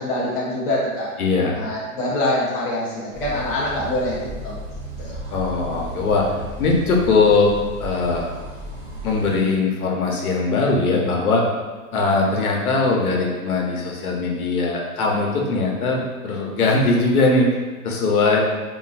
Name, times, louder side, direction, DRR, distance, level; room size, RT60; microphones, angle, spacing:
voice 1, 0.0-1.1 1.5-4.2 4.4-4.5 5.0-5.2, left 1 dB, 40° left, -6 dB, 0.5 m, -24 dB
voice 2, 1.2-1.6 5.3-6.3 6.6-7.5 7.8-8.3 9.0-11.4 11.9-17.5 17.8-18.4, left 3 dB, 75° left, -1 dB, 0.8 m, -20 dB
sound 1, 3.1-9.4, right 1 dB, 35° right, 0.6 m, -35 dB
3.1 x 2.5 x 2.4 m, 1.4 s
hypercardioid pair, 170°, 44 cm